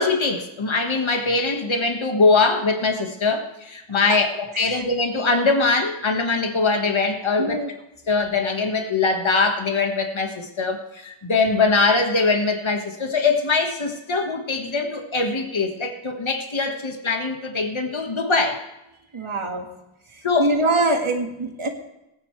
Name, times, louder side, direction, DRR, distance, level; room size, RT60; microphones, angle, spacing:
voice 1, 0.0-7.6 8.1-18.6 20.2-20.5, left 3 dB, 65° left, 3 dB, 1.6 m, -22 dB
voice 2, 7.4-7.7 19.1-19.7 20.4-21.7, right 2 dB, 75° right, 3 dB, 1.9 m, -23 dB
19.5 x 9.7 x 3.3 m, 0.91 s
wide cardioid pair, 55°, 50 cm